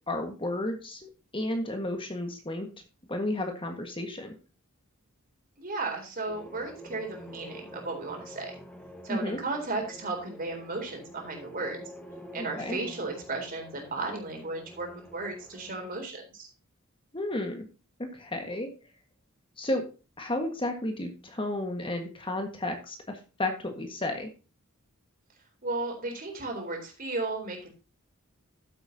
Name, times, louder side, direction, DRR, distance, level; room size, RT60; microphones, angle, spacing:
voice 1, 0.1-2.7 3.1-4.3 9.1-9.4 12.6-12.8 17.1-17.7 18.0-18.7 19.6-19.9 20.2-24.3, left 1 dB, 25° left, 4 dB, 1.6 m, -32 dB
voice 2, 5.6-8.6 9.0-11.8 12.3-16.5 25.6-27.7, right 3 dB, 45° right, 2 dB, 3.9 m, -35 dB
sound 1, 6.3-16.0, equal, 5° left, 1.3 m, -47 dB
13.0 x 8.1 x 2.8 m, 0.33 s
head